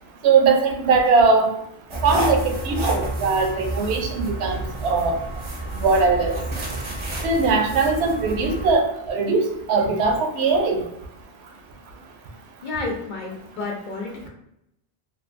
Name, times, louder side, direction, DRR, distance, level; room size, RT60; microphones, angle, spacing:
voice 1, 0.2-1.5 2.0-5.2 5.8-6.4 7.2-10.8, right 4 dB, 80° right, 3 dB, 0.8 m, -20 dB
sound 1, 1.9-8.7, right 2 dB, 40° right, 0.5 m, -29 dB
voice 2, 12.6-14.3, left 3 dB, 50° left, -1 dB, 0.8 m, -31 dB
2.6 x 2.5 x 2.5 m, 0.80 s
omnidirectional pair, 1.1 m